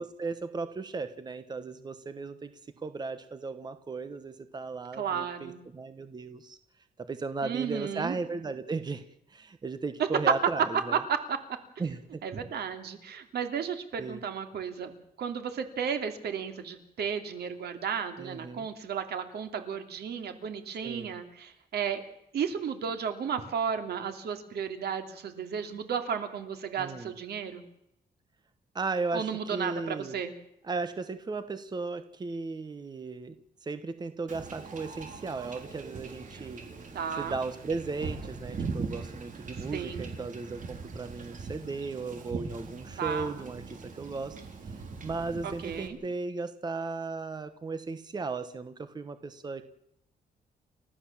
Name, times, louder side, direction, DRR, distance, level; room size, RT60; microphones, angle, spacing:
voice 1, 0.0-2.5 2.8-6.6 7.0-9.0 9.3-11.0 11.8-12.2 14.0-14.2 18.2-18.7 20.8-21.1 26.8-27.1 28.7-30.2 30.6-33.4 33.6-36.6 37.2-44.4 45.0-49.7, right 4 dB, 25° right, 10 dB, 1.1 m, -36 dB
voice 2, 5.0-5.6 7.4-8.2 10.9-11.4 12.2-22.0 22.3-27.6 29.1-30.3 36.9-37.3 39.7-40.1 43.0-43.3 45.4-46.0, right 7 dB, 80° right, 7 dB, 2.8 m, -34 dB
Wind / Ocean / Boat Water vehicle, 34.3-45.9, right 4 dB, 50° right, 3.6 m, -41 dB
30.0 x 14.0 x 7.3 m, 0.82 s
wide cardioid pair, 160°, 16 cm